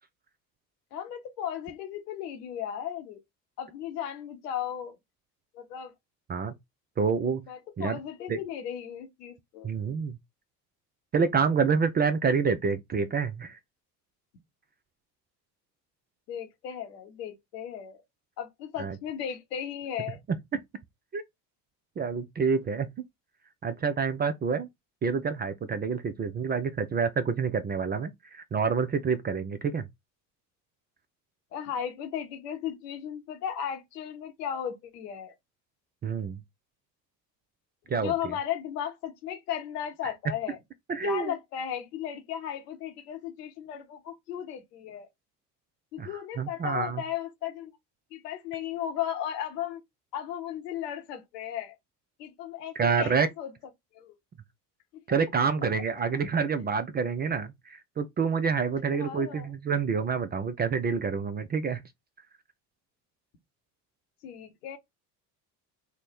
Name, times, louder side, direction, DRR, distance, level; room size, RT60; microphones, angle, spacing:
voice 1, 0.9-3.2 3.6-5.0 5.5-5.9 7.5-9.7 16.3-18.0 18.4-20.2 31.5-35.3 38.0-40.6 41.0-45.1 45.9-47.7 48.1-49.8 50.1-51.8 52.2-53.5 53.9-54.1 58.9-59.5 64.2-64.8, left 9 dB, 75° left, 1.0 m, -35 dB
voice 2, 7.0-7.4 7.8-8.0 8.3-8.4 9.6-10.2 11.1-13.6 18.8-19.0 20.5-20.6 21.1-21.2 22.0-22.9 23.6-24.7 25.0-29.9 36.0-36.4 37.9-38.1 40.9-41.3 46.0-47.0 52.7-53.3 55.1-61.8, right 5 dB, 20° right, 0.4 m, -27 dB
3.1 x 2.1 x 4.2 m
hypercardioid pair, 60°, 48 cm